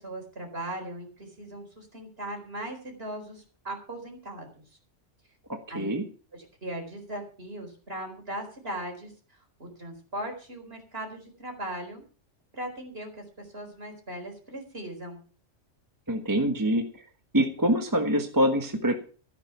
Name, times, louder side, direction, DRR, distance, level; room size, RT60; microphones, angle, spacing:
voice 1, 0.0-4.6 5.7-6.0 6.3-9.1 9.6-12.0 12.5-15.2, right 1 dB, 50° right, 3 dB, 4.6 m, -38 dB
voice 2, 5.5-6.0 16.1-16.9 17.3-19.0, equal, 15° right, 4 dB, 1.3 m, -25 dB
14.5 x 9.8 x 5.8 m, 0.40 s
omnidirectional pair, 1.3 m